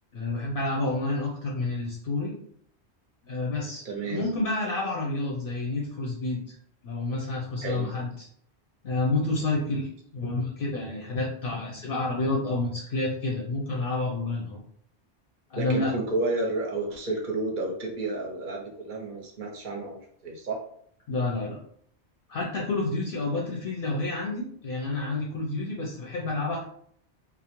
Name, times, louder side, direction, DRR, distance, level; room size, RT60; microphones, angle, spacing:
voice 1, 0.1-2.3 3.3-6.6 6.8-8.3 8.8-14.6 15.5-15.9 21.1-21.6 22.3-26.6, left 2 dB, 65° left, -2 dB, 0.7 m, -29 dB
voice 2, 3.9-4.3 7.6-7.9 15.6-20.6, right 2 dB, 55° right, 1 dB, 0.7 m, -31 dB
2.5 x 2.0 x 2.8 m, 0.64 s
omnidirectional pair, 1.1 m